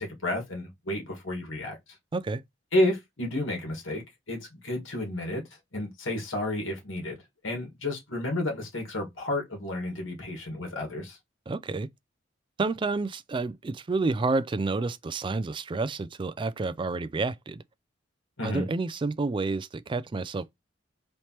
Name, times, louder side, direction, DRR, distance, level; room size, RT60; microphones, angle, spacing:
voice 1, 0.0-1.8 2.7-5.4 5.7-7.2 7.4-11.2 18.4-18.7, left 1 dB, 70° left, 1.7 m, -31 dB
voice 2, 11.5-11.9 12.6-17.6 18.4-20.6, right 3 dB, 25° right, 0.3 m, -29 dB
4.4 x 3.2 x 2.9 m
head